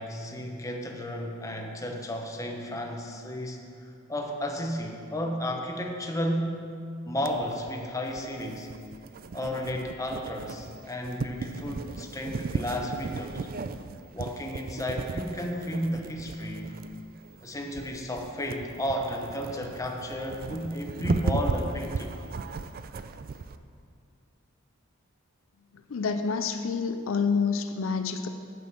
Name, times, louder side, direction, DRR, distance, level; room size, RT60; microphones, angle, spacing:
voice 1, 0.0-3.6 4.1-6.6 7.1-8.7 9.3-13.5 14.1-16.7 17.4-22.2, equal, 15° left, 1 dB, 0.8 m, -33 dB
sound 1, 7.3-23.6, right 4 dB, 45° right, 0.3 m, -36 dB
voice 2, 25.9-28.3, left 5 dB, 65° left, 8 dB, 0.4 m, -28 dB
8.6 x 6.2 x 7.4 m, 2.4 s
head